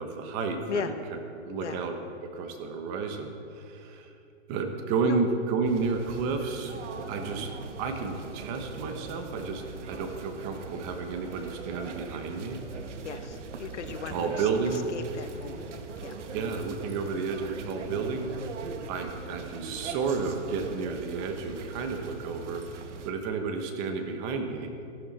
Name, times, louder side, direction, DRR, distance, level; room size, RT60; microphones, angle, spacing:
voice 1, 0.0-1.9 2.2-4.1 4.5-6.7 7.1-7.5 7.8-12.6 14.1-14.8 16.3-18.3 18.9-24.7, right 4 dB, 25° right, 5 dB, 1.1 m, -31 dB
sound 1, 5.6-23.1, right 4 dB, 75° right, 1.4 m, -41 dB
voice 2, 13.0-15.7 16.0-16.1, left 7 dB, 70° left, 8 dB, 1.3 m, -37 dB
14.5 x 12.0 x 4.2 m, 2.6 s
hypercardioid pair, 150°, 36 cm